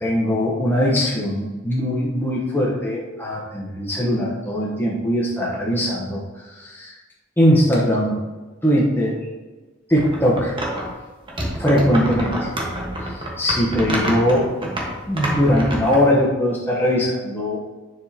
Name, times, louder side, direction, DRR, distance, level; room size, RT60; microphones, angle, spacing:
voice 1, 0.0-6.2 6.5-6.9 7.4-8.2 8.6-9.2 9.9-10.5 11.6-12.5 13.4-14.7 15.1-17.6, equal, 10° left, -5 dB, 1.0 m, -20 dB
sound 1, 9.9-10.9 11.3-16.0, right 1 dB, 25° right, 1.3 m, -27 dB
10.0 x 4.9 x 2.9 m, 1.2 s
head